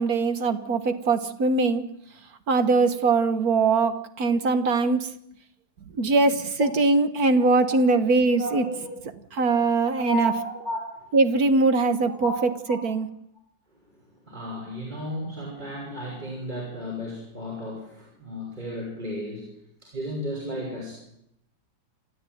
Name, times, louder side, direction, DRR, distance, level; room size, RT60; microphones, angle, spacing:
voice 1, 0.0-1.8 2.5-5.1 5.9-8.6 9.3-10.3 11.1-12.3 12.7-13.1, right 3 dB, 55° right, 11 dB, 1.8 m, -22 dB
voice 2, 7.4-7.8 8.4-8.9 9.9-11.1 12.1-12.4 12.7-12.8 13.7-19.5 19.8-20.9, equal, 25° right, -3 dB, 6.2 m, -34 dB
27.5 x 13.5 x 9.4 m, 0.77 s
omnidirectional pair, 2.0 m